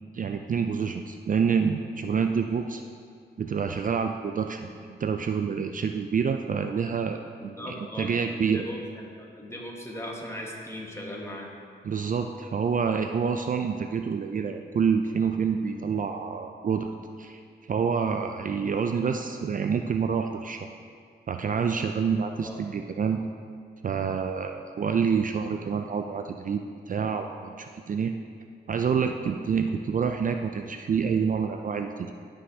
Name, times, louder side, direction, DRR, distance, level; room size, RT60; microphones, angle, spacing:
voice 1, 0.1-2.8 3.4-7.2 7.4-8.7 11.8-16.9 17.2-20.7 21.3-23.2 23.8-28.1 28.7-32.1, right 6 dB, 45° right, 5 dB, 0.4 m, -27 dB
voice 2, 7.4-9.1 9.4-11.5 22.4-22.6, equal, 15° left, -2 dB, 1.5 m, -38 dB
13.0 x 5.4 x 2.8 m, 2.3 s
cardioid pair, 75°, 19 cm